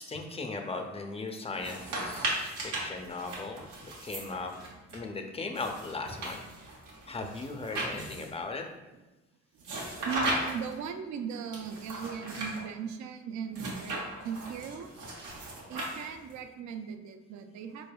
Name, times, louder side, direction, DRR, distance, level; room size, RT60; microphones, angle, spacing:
voice 1, 0.0-4.5 4.9-6.4 7.1-8.7, left 3 dB, 20° left, 4 dB, 0.4 m, -38 dB
sound 1, 1.5-5.0 5.5-8.4 9.6-10.8 11.5-12.6 13.5-16.3, right 2 dB, 90° right, 0.9 m, -37 dB
voice 2, 10.0-14.9 15.7-17.9, right 6 dB, 70° right, 7 dB, 0.4 m, -38 dB
3.8 x 3.4 x 2.2 m, 1.1 s
cardioid pair, 90°, 30 cm